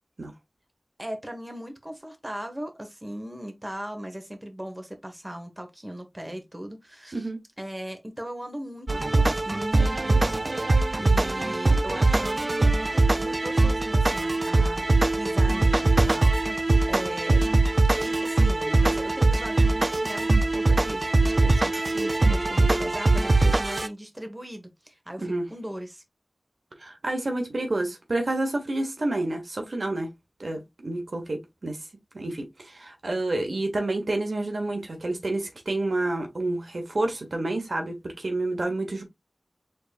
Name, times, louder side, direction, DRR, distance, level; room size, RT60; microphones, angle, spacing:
voice 1, 1.0-7.3 7.6-17.5 18.0-26.0, equal, 25° right, 1.4 m, -38 dB
sound 1, 8.9-23.9, right 2 dB, 50° right, 0.4 m, -22 dB
voice 2, 26.8-30.1 30.4-31.8 32.1-39.0, right 2 dB, 80° right, 1.2 m, -29 dB
5.2 x 3.9 x 2.4 m
wide cardioid pair, 60°, 0 cm